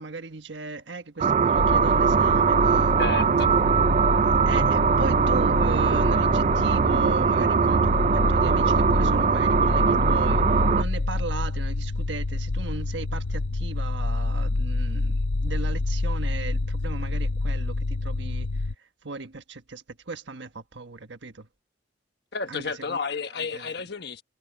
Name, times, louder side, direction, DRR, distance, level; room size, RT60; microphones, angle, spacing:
voice 1, 0.0-2.9 4.1-21.5 22.5-23.0 23.5-23.7, right 3 dB, 65° right, 1.4 m, -37 dB
sound 1, 1.2-10.8, right 6 dB, 35° right, 0.3 m, -21 dB
sound 2, 1.6-18.7, left 2 dB, 80° left, 0.8 m, -27 dB
voice 2, 3.0-3.5 22.3-24.2, left 4 dB, 55° left, 1.3 m, -31 dB
head